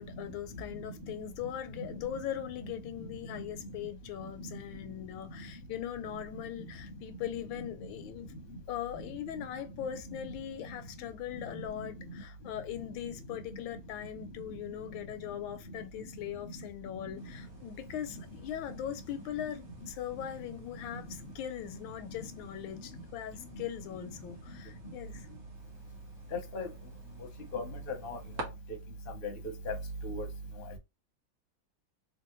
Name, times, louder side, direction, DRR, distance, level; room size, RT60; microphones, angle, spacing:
voice 1, 0.0-8.3 8.7-25.3, left 10 dB, 80° left, 1.4 m, -40 dB
sound 1, 17.2-28.4, right 2 dB, 45° right, 1.2 m, -51 dB
voice 2, 26.3-26.7 27.5-28.2 29.2-29.3 29.7-29.8 30.0-30.3, left 3 dB, 45° left, 0.7 m, -37 dB
3.7 x 2.4 x 3.0 m
omnidirectional pair, 2.1 m